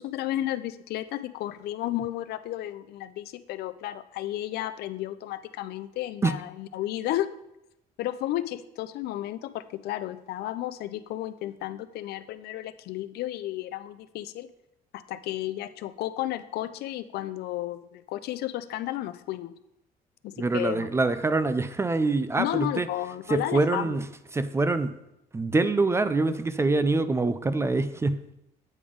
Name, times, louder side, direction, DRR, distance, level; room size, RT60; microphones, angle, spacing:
voice 1, 0.0-7.3 8.0-14.5 14.9-19.5 20.2-20.9 22.4-24.0, left 14 dB, 70° left, 13 dB, 0.4 m, -33 dB
voice 2, 20.4-22.9 23.3-24.1 24.3-24.9 25.3-28.2, right 3 dB, 15° right, 12 dB, 0.3 m, -25 dB
8.5 x 3.5 x 5.0 m, 0.85 s
cardioid pair, 110°, 17 cm